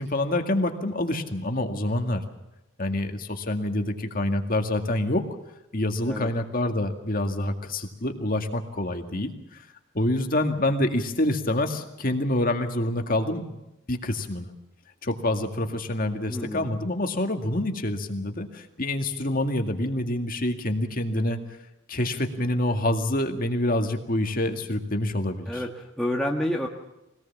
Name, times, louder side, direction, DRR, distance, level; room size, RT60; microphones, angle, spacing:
voice 1, 0.0-2.2 2.8-5.2 5.7-9.3 9.9-13.6 13.9-14.5 15.0-21.4 21.9-25.6, left 1 dB, 40° left, 5 dB, 2.1 m, -27 dB
voice 2, 16.3-16.7 25.5-26.7, left 1 dB, 5° left, -2 dB, 1.5 m, -29 dB
24.0 x 18.5 x 7.3 m, 0.94 s
head